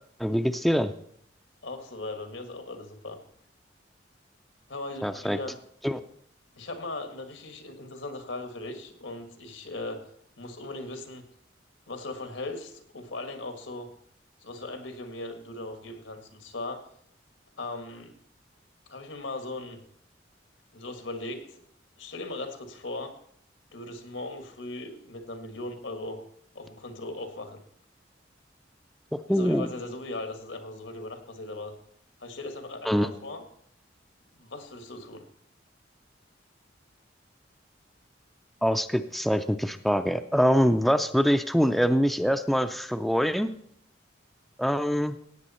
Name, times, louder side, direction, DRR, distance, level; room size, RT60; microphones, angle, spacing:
voice 1, 0.2-0.9 5.0-5.4 5.8-6.0 29.3-29.7 32.9-33.1 38.6-43.5 44.6-45.2, equal, ahead, 8 dB, 0.4 m, -24 dB
voice 2, 1.6-3.2 4.7-5.6 6.5-10.1 10.4-11.2 11.9-13.9 14.4-16.8 17.6-18.2 18.9-19.8 20.7-21.6 22.0-23.1 23.7-26.2 26.6-27.6 29.3-31.8 32.2-33.4 34.3-35.2, left 2 dB, 85° left, 6 dB, 1.7 m, -38 dB
16.0 x 8.9 x 4.3 m, 0.66 s
head